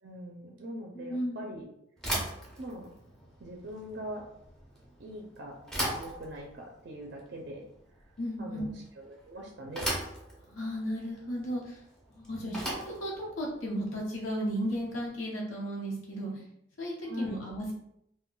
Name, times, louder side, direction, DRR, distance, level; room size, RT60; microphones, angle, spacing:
voice 1, 0.0-1.7 2.6-2.9 3.4-4.3 5.0-5.6 5.9-7.7 8.4-9.9 12.4-12.6 17.1-17.4, equal, 55° right, 0 dB, 0.4 m, -42 dB
voice 2, 0.9-1.5 8.2-8.7 10.4-11.8 12.1-16.4 16.8-17.7, equal, 85° left, -3 dB, 0.7 m, -35 dB
Bicycle / Thump thud, 2.0-15.1, equal, ahead, 0.5 m, -39 dB
2.2 x 2.2 x 3.7 m, 0.73 s
head